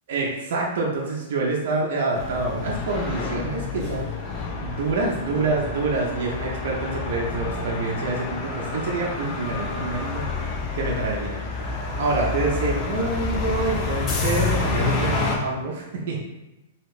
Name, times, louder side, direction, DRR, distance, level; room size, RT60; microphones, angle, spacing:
voice 1, 0.1-4.1 4.5-10.2 10.7-11.3 12.0-16.2, right 3 dB, 65° right, -2 dB, 0.6 m, -26 dB
sound 1, 2.1-15.4, left 4 dB, 30° left, 0.6 m, -28 dB
2.9 x 2.7 x 3.2 m, 1.0 s
hypercardioid pair, 145°, 0 cm